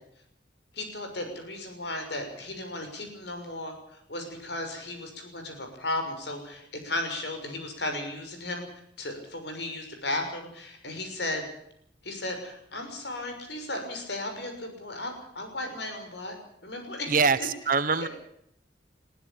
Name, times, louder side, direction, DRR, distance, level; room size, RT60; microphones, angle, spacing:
voice 1, 0.7-11.4 12.0-16.3 16.6-17.5 17.9-18.1, left 2 dB, 70° left, 5 dB, 6.3 m, -35 dB
voice 2, 17.1-18.1, right 5 dB, 45° right, 14 dB, 1.1 m, -24 dB
21.5 x 16.0 x 8.6 m, 0.72 s
head